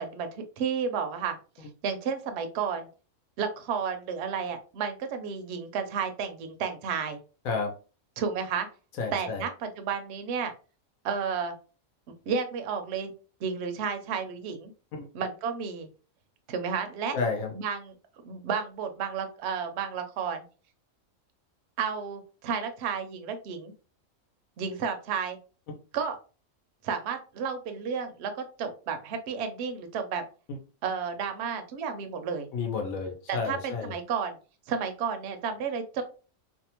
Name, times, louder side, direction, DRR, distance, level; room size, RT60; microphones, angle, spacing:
voice 1, 0.0-2.9 3.4-7.2 8.2-8.7 9.1-10.5 11.0-11.5 12.3-13.1 13.4-14.7 15.1-15.9 16.5-17.2 17.5-17.9 18.2-20.4 21.8-23.7 24.6-25.4 25.9-26.2 26.8-28.3 28.6-30.2 30.8-32.5 33.3-34.4 34.7-36.0, right 6 dB, 65° right, 7 dB, 0.7 m, -32 dB
voice 2, 9.0-9.4 14.9-15.1 17.1-17.5 30.5-30.6 32.5-33.9, left 4 dB, 80° left, 3 dB, 1.0 m, -31 dB
2.7 x 2.1 x 2.8 m, 0.35 s
omnidirectional pair, 1.5 m